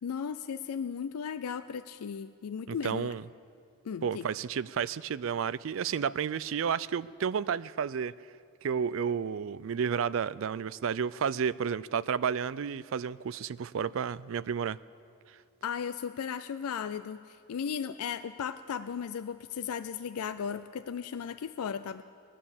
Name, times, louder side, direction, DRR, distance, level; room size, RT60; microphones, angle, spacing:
voice 1, 0.0-3.1 3.8-4.3 15.6-22.0, left 7 dB, 85° left, 12 dB, 0.4 m, -36 dB
voice 2, 2.7-3.2 4.0-8.1 8.6-14.8, right 7 dB, 65° right, 18 dB, 0.4 m, -31 dB
18.5 x 10.0 x 7.1 m, 2.3 s
head